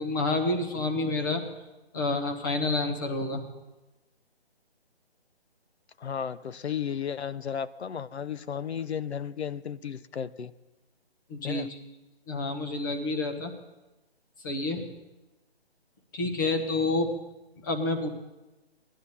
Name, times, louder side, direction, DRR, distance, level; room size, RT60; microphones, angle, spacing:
voice 1, 0.0-1.4 1.9-3.4 11.3-11.7 12.3-13.5 14.4-14.8 16.1-17.1 17.6-18.1, left 2 dB, 20° left, 4 dB, 1.0 m, -28 dB
voice 2, 6.0-10.5 11.4-11.7, left 8 dB, 85° left, 15 dB, 0.7 m, -34 dB
18.0 x 11.5 x 4.2 m, 1.1 s
hypercardioid pair, 165°, 32 cm